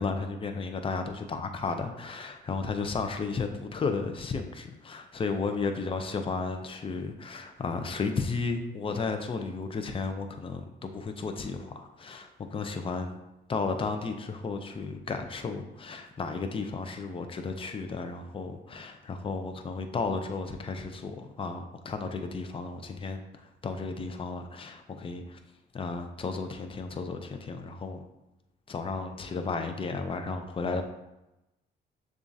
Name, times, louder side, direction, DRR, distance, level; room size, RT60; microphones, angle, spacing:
voice 1, 0.0-13.2 13.5-25.4 25.7-28.0 28.7-30.8, left 4 dB, 25° left, 6 dB, 0.5 m, -33 dB
6.8 x 2.4 x 2.7 m, 0.94 s
cardioid pair, 90°, 20 cm